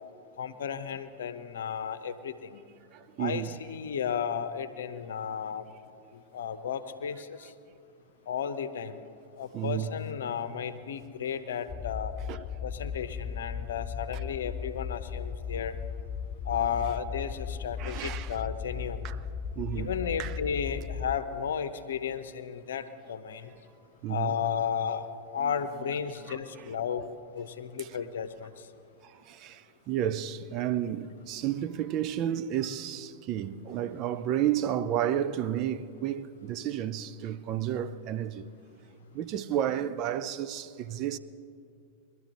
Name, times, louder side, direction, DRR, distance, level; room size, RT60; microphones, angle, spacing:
voice 1, 0.4-2.6 3.2-5.6 6.1-7.5 8.3-9.0 9.4-12.1 12.6-15.8 16.4-19.1 19.7-23.5 24.1-27.1 27.3-28.5, left 7 dB, 65° left, 0.8 m, -33 dB
voice 2, 2.9-3.5 9.5-9.9 12.3-12.4 17.8-18.4 19.0-19.2 19.6-19.9 20.2-20.4 24.0-24.3 26.3-26.4 27.8-27.9 29.0-38.5 39.1-41.2, right 11 dB, 40° right, 0.5 m, -31 dB
sound 1, 11.7-21.2, left 6 dB, 25° left, 0.4 m, -37 dB
21.5 x 12.5 x 3.8 m
figure-of-eight pair, 90°, 0 cm